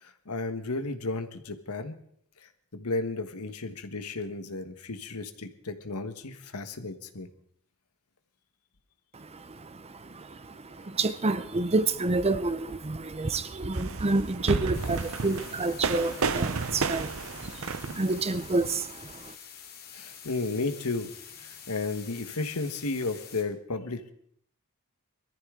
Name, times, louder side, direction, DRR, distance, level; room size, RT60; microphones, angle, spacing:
voice 1, 0.0-2.0 2.4-7.3 19.9-21.1 21.4-24.1, left 3 dB, 85° left, 1.4 m, -33 dB
voice 2, 9.1-19.3, right 3 dB, 30° right, 0.7 m, -29 dB
sound 1, 13.7-18.7, right 4 dB, 65° right, 0.8 m, -32 dB
sound 2, 14.7-23.4, left 8 dB, 45° left, 2.4 m, -47 dB
22.0 x 14.0 x 3.8 m
head